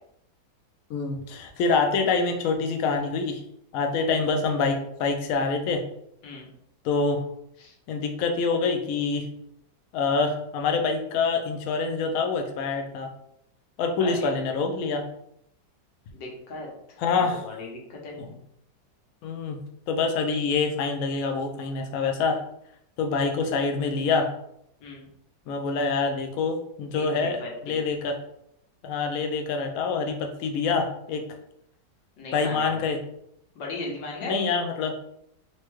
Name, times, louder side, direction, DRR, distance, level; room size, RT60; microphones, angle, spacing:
voice 1, 0.9-3.4 3.7-5.8 6.8-7.2 7.9-9.3 9.9-13.1 13.8-15.1 17.0-17.4 19.2-19.6 19.9-22.4 23.0-24.3 25.5-27.4 27.6-28.1 28.8-31.2 32.3-33.0 34.2-35.0, left 4 dB, 70° left, 4 dB, 0.9 m, -26 dB
voice 2, 16.1-18.2 24.8-25.0 26.9-27.8 32.2-32.9 33.5-34.4, left 2 dB, 85° left, -2 dB, 1.7 m, -37 dB
4.2 x 2.2 x 3.1 m, 0.75 s
omnidirectional pair, 1.9 m